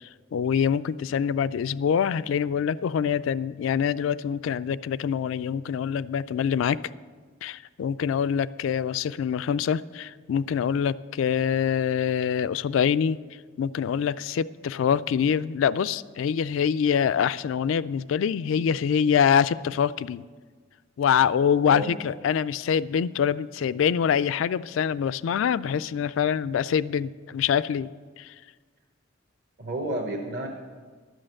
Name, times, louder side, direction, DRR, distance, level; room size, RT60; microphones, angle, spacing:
voice 1, 0.0-6.8 7.4-13.2 13.6-20.2 21.0-27.9 28.2-28.3, left 7 dB, 70° left, 16 dB, 0.3 m, -25 dB
voice 2, 21.7-22.0 29.6-30.5, right 1 dB, 55° right, -1 dB, 1.0 m, -31 dB
11.5 x 6.4 x 7.7 m, 1.5 s
head